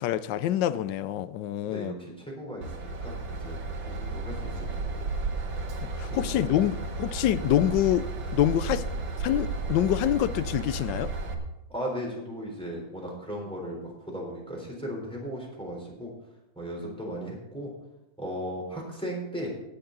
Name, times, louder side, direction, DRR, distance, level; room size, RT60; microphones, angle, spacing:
voice 1, 0.0-1.9 5.8-8.8 9.2-11.1, left 12 dB, 80° left, 1.2 m, -26 dB
voice 2, 1.6-3.6 3.8-5.1 6.0-6.6 11.7-16.1 16.6-17.7 18.2-19.5, equal, 5° left, 3.8 m, -37 dB
Train / Engine, 2.6-11.3, right 3 dB, 85° right, 2.0 m, -33 dB
18.5 x 7.6 x 3.9 m
omnidirectional pair, 2.0 m